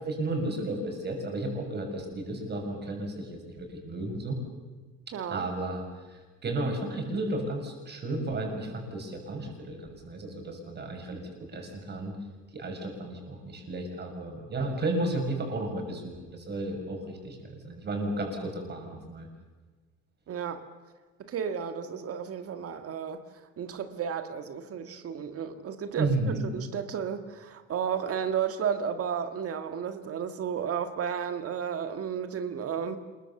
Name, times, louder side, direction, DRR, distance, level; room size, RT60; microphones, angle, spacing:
voice 1, 0.0-4.4 5.3-12.1 12.5-19.3 26.0-26.4, right 2 dB, 35° right, 3 dB, 6.6 m, -33 dB
voice 2, 5.1-5.5 20.3-20.6 21.2-23.2 23.6-33.0, right 7 dB, 50° right, 8 dB, 1.8 m, -33 dB
26.5 x 22.5 x 7.1 m, 1.3 s
cardioid pair, 140°, 31 cm